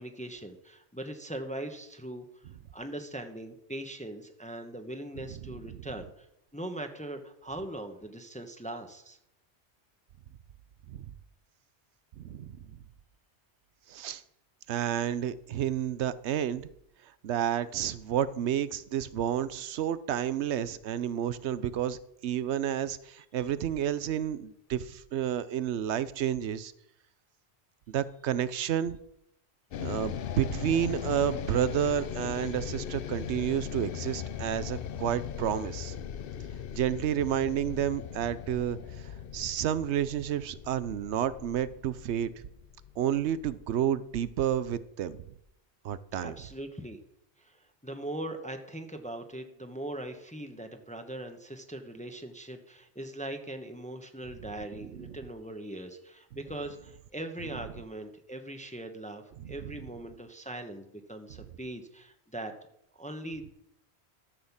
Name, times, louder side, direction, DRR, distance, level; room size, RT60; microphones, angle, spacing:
voice 1, 0.0-2.4 2.7-6.3 6.5-9.2 46.2-47.0 47.4-62.5 62.9-63.5, right 1 dB, 5° left, 5 dB, 1.0 m, -40 dB
voice 2, 12.2-12.6 13.9-14.2 14.7-16.7 17.2-22.0 22.2-26.7 27.9-29.0 29.8-35.9 36.7-38.8 39.3-42.3 43.0-45.2 45.8-46.4 54.9-55.1 59.4-59.7, right 10 dB, 80° right, 16 dB, 1.0 m, -30 dB
sound 1, 29.7-44.0, left 9 dB, 60° left, 0.8 m, -39 dB
13.0 x 6.5 x 7.2 m, 0.77 s
omnidirectional pair, 1.1 m